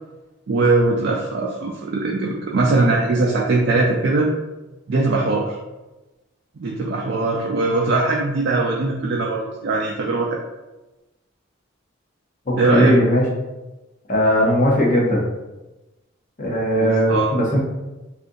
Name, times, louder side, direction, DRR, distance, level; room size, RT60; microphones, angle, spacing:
voice 1, 0.5-4.3 4.9-5.6 6.6-10.4 12.6-12.9 16.8-17.3, right 3 dB, 60° right, -2 dB, 0.4 m, -20 dB
voice 2, 12.5-13.2 14.1-15.3 16.4-17.6, equal, 40° left, -3 dB, 0.7 m, -18 dB
2.7 x 2.4 x 3.8 m, 1.1 s
head